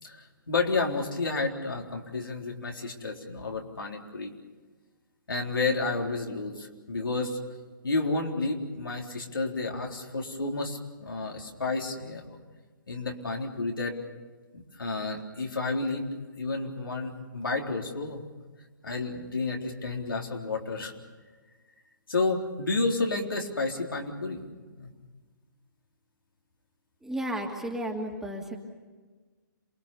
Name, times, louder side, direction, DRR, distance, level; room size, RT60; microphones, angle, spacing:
voice 1, 0.0-4.3 5.3-7.4 7.8-12.4 12.9-14.0 14.5-16.0 16.4-18.2 18.8-20.9 22.1-24.4 24.8-24.9, left 3 dB, 85° left, 0 dB, 3.9 m, -31 dB
voice 2, 27.0-28.6, right 1 dB, 5° right, 0 dB, 2.5 m, -33 dB
27.5 x 21.0 x 6.9 m, 1.4 s
figure-of-eight pair, 135°, 11 cm